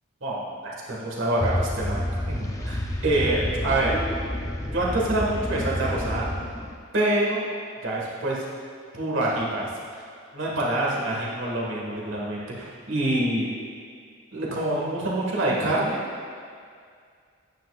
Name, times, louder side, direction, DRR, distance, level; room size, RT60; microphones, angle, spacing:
voice 1, 0.2-4.2 4.7-6.3 6.9-7.5 7.8-8.4 8.9-9.7 10.0-10.1 10.3-13.5 14.3-16.0, right 1 dB, 65° right, -4 dB, 1.7 m, -26 dB
sound 1, 1.4-6.7, left 1 dB, 15° left, 0.5 m, -29 dB
9.8 x 9.0 x 2.5 m, 2.2 s
head